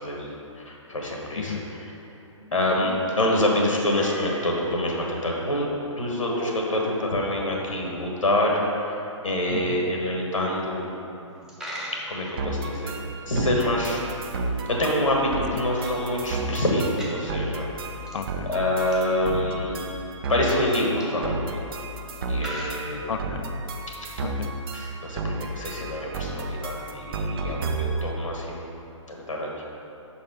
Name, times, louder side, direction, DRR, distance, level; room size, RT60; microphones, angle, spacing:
voice 1, 0.0-1.5 1.8-1.9 2.5-10.9 12.1-12.9 13.2-14.0 14.7-17.7 18.5-19.8 20.3-21.7 22.3-23.0 24.7-28.7 29.1-29.6, left 1 dB, 90° left, -1 dB, 1.2 m, -26 dB
sound 1, 2.4-3.2 3.9-4.8 6.2-6.8, right 1 dB, 75° right, 1.2 m, -38 dB
Coin (dropping), 11.3-23.6, equal, 5° right, 0.7 m, -44 dB
sound 2, 12.4-28.1, right 2 dB, 45° right, 0.6 m, -32 dB
voice 2, 18.1-18.5 23.1-23.5 24.2-24.5, left 7 dB, 70° left, 7 dB, 0.4 m, -33 dB
5.5 x 4.2 x 5.0 m, 2.9 s
figure-of-eight pair, 125°, 16 cm